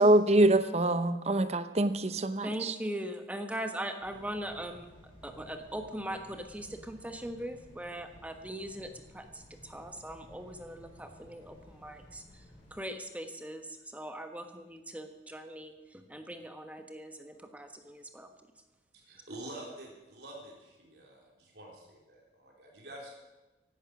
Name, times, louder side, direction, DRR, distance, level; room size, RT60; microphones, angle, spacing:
voice 1, 0.0-2.7, right 1 dB, 35° right, 11 dB, 0.8 m, -25 dB
voice 2, 2.4-12.4 12.7-18.3, right 1 dB, 10° right, 6 dB, 1.3 m, -40 dB
sound 1, 4.0-12.8, equal, 30° left, 5.6 m, -55 dB
voice 3, 19.1-23.1, right 1 dB, 65° right, -1 dB, 3.4 m, -47 dB
16.0 x 11.5 x 6.1 m, 1.1 s
head